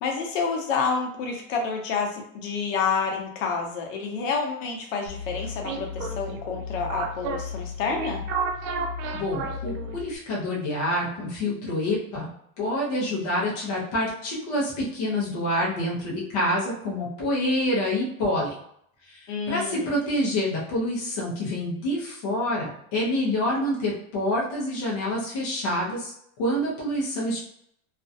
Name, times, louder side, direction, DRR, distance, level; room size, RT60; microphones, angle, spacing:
voice 1, 0.0-8.2 19.3-19.9, left 5 dB, 65° left, 1 dB, 0.7 m, -29 dB
sound 1, 5.1-10.2, right 1 dB, 75° right, 0.6 m, -32 dB
voice 2, 9.1-12.3 12.6-18.6 19.1-26.1 26.4-27.4, left 1 dB, 30° left, -5 dB, 0.4 m, -27 dB
2.4 x 2.1 x 2.5 m, 0.70 s
supercardioid pair, 175°, 42 cm